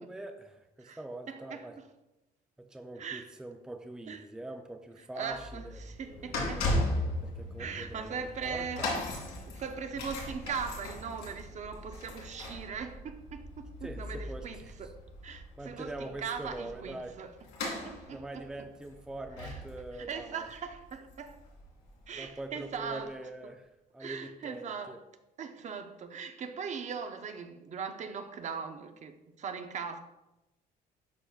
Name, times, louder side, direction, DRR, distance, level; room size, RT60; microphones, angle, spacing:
voice 1, 0.0-1.8 2.6-6.6 7.2-8.9 13.8-14.8 15.6-17.1 18.1-20.5 22.1-23.7 23.9-25.0, right 2 dB, 5° right, 0.5 m, -43 dB
voice 2, 1.3-1.9 3.0-3.3 4.1-4.2 5.1-6.7 7.6-9.0 9.5-17.3 17.6-18.5 19.4-19.6 19.9-21.4 22.1-23.2 23.4-23.5 24.0-25.0 25.4-30.0, right 6 dB, 45° right, 0.6 m, -40 dB
sound 1, 5.3-22.2 22.9-23.0, left 1 dB, 90° left, 2.4 m, -38 dB
11.5 x 4.4 x 2.4 m
cardioid pair, 110°, 17 cm